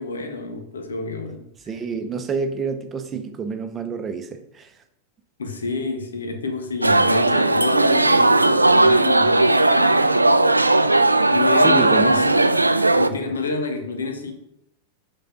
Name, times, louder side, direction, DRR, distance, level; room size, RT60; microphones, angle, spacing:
voice 1, 0.0-1.4 5.4-10.2 11.3-12.4 12.9-14.3, left 3 dB, 70° left, 1.0 m, -28 dB
voice 2, 1.7-4.7 11.6-12.1, right 5 dB, 20° right, 0.8 m, -28 dB
sound 1, 6.8-13.1, right 2 dB, 85° right, 0.3 m, -17 dB
6.8 x 3.7 x 5.4 m
figure-of-eight pair, 90°, 0 cm